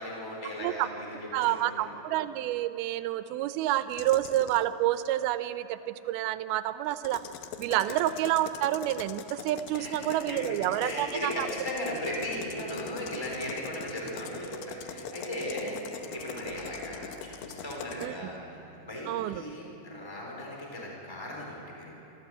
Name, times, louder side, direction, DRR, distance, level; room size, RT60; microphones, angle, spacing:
voice 1, 0.0-1.9 7.9-8.0 9.7-15.8 16.1-21.9, left 1 dB, 5° left, -2 dB, 3.8 m, -37 dB
voice 2, 1.3-7.2 7.6-11.5 18.0-18.1 19.1-19.4, right 14 dB, 85° right, 12 dB, 2.5 m, -29 dB
sound 1, 3.9-4.6 6.9-18.1, left 8 dB, 75° left, 2.5 m, -43 dB
sound 2, 11.9-18.8, right 1 dB, 50° left, 1.1 m, -48 dB
26.0 x 14.0 x 7.8 m, 2.8 s
omnidirectional pair, 4.3 m